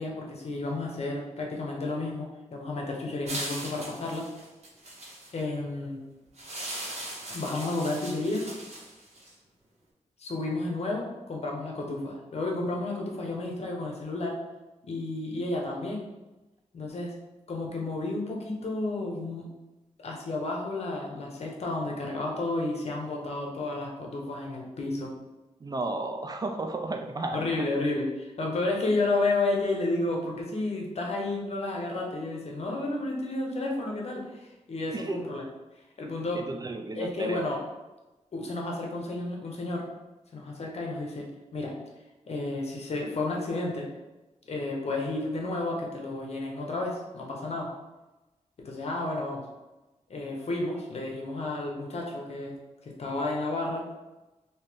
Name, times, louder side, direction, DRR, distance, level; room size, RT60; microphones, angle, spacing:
voice 1, 0.0-4.3 5.3-6.0 7.3-8.5 10.2-14.4 14.8-16.0 16.7-17.2 17.5-19.5 20.0-25.1 27.3-35.4 36.0-36.5 36.9-37.6 38.3-39.8 40.3-41.7 42.3-43.9 44.5-47.7 48.6-49.4 50.1-53.8, left 2 dB, 60° left, 0 dB, 0.8 m, -31 dB
sound 1, 3.3-5.4 6.4-9.3, right 1 dB, 60° right, 1.4 m, -39 dB
voice 2, 25.6-27.7 34.9-35.2 36.3-37.5, right 2 dB, 30° right, 5 dB, 0.3 m, -33 dB
3.1 x 2.8 x 3.5 m, 1.1 s
wide cardioid pair, 90°, 12 cm